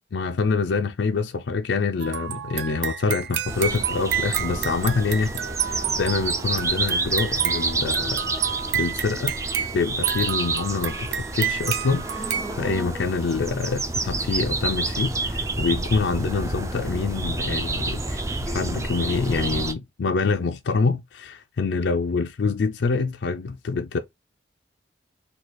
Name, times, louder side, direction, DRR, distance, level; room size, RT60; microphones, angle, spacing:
voice 1, 0.1-5.4 5.7-8.5 8.7-9.3 9.7-24.0, left 4 dB, 70° left, 0.4 m, -26 dB
sound 1, 2.0-12.6, right 10 dB, 70° right, 0.4 m, -30 dB
sound 2, 3.5-19.7, right 2 dB, 15° right, 0.4 m, -29 dB
4.0 x 2.3 x 4.6 m
head